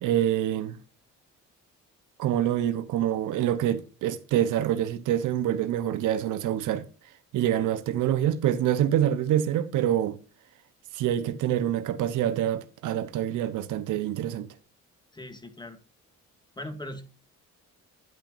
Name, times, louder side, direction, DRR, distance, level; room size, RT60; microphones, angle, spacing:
voice 1, 0.0-0.8 2.2-6.9 7.3-10.2 10.9-14.5, right 11 dB, 85° right, 1.0 m, -26 dB
voice 2, 15.1-15.8 16.6-17.1, left 1 dB, 15° left, 1.9 m, -39 dB
11.0 x 9.1 x 2.6 m
cardioid pair, 90°, 30 cm